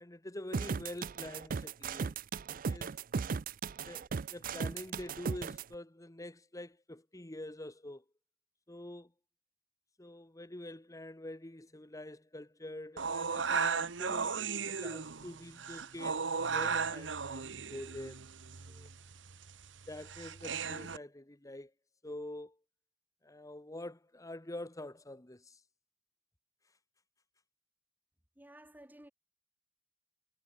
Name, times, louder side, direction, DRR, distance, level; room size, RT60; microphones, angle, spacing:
voice 1, 0.0-2.2 2.5-2.9 3.8-8.0 8.7-9.1 10.0-14.4 14.6-17.4 17.7-18.2 18.7-18.9 19.9-21.7 22.0-22.6 23.2-25.6, left 1 dB, 20° left, 1.3 m, -46 dB
sound 1, 0.5-5.6, right 5 dB, 50° right, 0.4 m, -36 dB
sound 2, 13.0-21.0, right 5 dB, 90° right, 1.2 m, -36 dB
voice 2, 28.4-29.1, right 1 dB, 10° right, 1.6 m, -54 dB
head